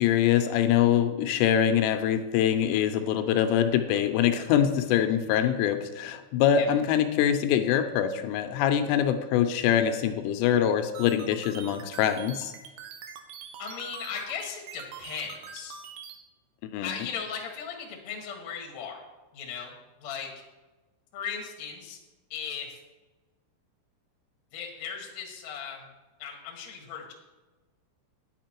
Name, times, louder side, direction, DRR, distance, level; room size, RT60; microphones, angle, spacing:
voice 1, 0.0-12.5 16.7-16.9, left 9 dB, 85° left, 8 dB, 3.2 m, -24 dB
sound 1, 10.9-16.2, right 7 dB, 75° right, 2.7 m, -43 dB
voice 2, 13.6-15.8 16.8-19.0 19.3-19.7 20.0-20.3 21.1-22.0 22.3-22.8 24.5-25.8 26.2-27.1, left 7 dB, 65° left, 1 dB, 1.7 m, -37 dB
10.0 x 8.1 x 4.5 m, 1.2 s
omnidirectional pair, 5.8 m